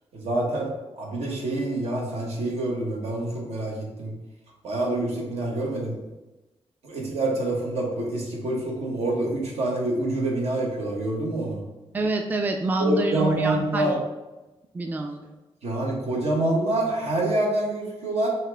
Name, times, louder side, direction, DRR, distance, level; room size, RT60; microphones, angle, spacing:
voice 1, 0.1-0.7 1.0-4.1 4.6-6.0 6.8-11.6 12.8-13.9 15.6-18.3, right 2 dB, 75° right, -2 dB, 1.2 m, -26 dB
voice 2, 11.9-13.9 14.7-15.3, right 2 dB, 15° right, 4 dB, 0.3 m, -27 dB
5.5 x 2.4 x 3.4 m, 1.1 s
cardioid pair, 110°, 11 cm